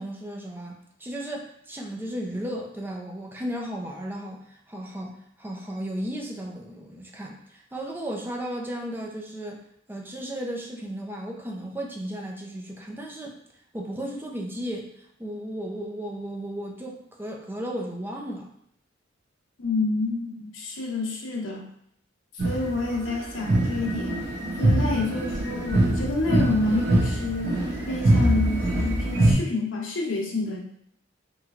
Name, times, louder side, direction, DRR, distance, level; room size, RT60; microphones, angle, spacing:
voice 1, 0.0-9.6 9.9-13.4 13.7-18.5, right 1 dB, 10° right, 0 dB, 0.5 m, -35 dB
voice 2, 19.6-21.7 22.3-24.2 24.6-30.6, left 2 dB, 75° left, -1 dB, 0.8 m, -28 dB
sound 1, 22.4-22.8 23.1-29.3, right 1 dB, 55° right, 0.8 m, -23 dB
3.1 x 3.1 x 2.4 m, 0.70 s
head